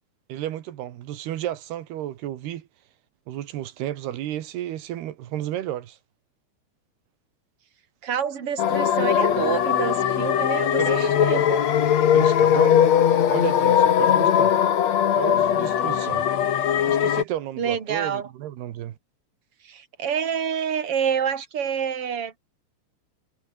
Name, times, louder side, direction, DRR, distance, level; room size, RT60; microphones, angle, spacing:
voice 1, 0.3-2.7 3.3-6.0 10.8-11.7 12.1-12.9 13.3-14.6 15.1-16.3 16.9-19.0, right 12 dB, 90° right, 3.6 m, -32 dB
voice 2, 8.0-11.4 17.6-18.3 19.6-22.4, right 7 dB, 40° right, 3.8 m, -27 dB
sound 1, 8.6-17.2, left 9 dB, 50° left, 2.6 m, -20 dB
omnidirectional pair, 4.5 m